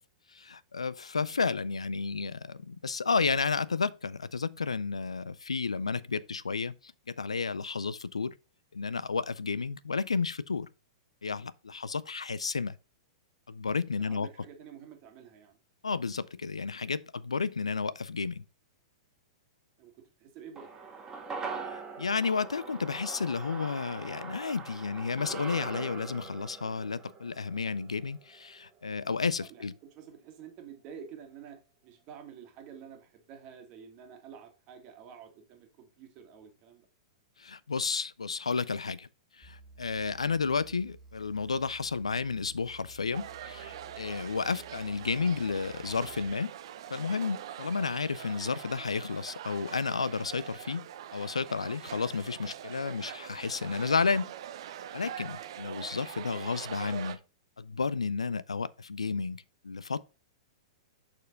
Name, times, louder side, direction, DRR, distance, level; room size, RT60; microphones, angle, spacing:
voice 1, 0.3-8.3 8.7-10.7 11.2-12.8 13.5-14.3 15.8-18.4 21.4-29.7 37.4-39.1 39.4-46.5 46.9-50.9 51.1-54.3 54.9-57.2 57.6-60.0, left 5 dB, 85° left, 0.3 m, -32 dB
voice 2, 14.0-15.6 19.8-19.9 20.2-20.8 29.4-36.9, right 7 dB, 40° right, 1.7 m, -49 dB
sound 1, 20.6-29.1 29.3-29.4, right 4 dB, 20° right, 1.4 m, -42 dB
sound 2, 39.4-46.3, right 3 dB, ahead, 2.4 m, -54 dB
sound 3, 43.1-57.2, right 10 dB, 60° right, 0.6 m, -44 dB
6.3 x 4.4 x 3.9 m
figure-of-eight pair, 105°, 3 cm